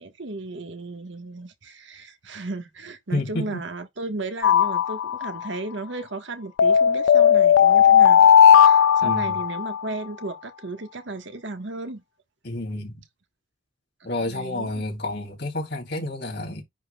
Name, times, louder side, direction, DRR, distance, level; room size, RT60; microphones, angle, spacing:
voice 1, 0.0-8.3 8.6-12.0 14.0-14.7, right 2 dB, 60° right, 1.3 m, -35 dB
voice 2, 3.1-3.6 9.0-9.4 12.4-13.0 14.0-16.6, left 2 dB, 55° left, 3.0 m, -30 dB
sound 1, 4.4-5.5 6.6-9.8, left 8 dB, 80° left, 0.3 m, -16 dB
10.5 x 3.9 x 2.3 m
head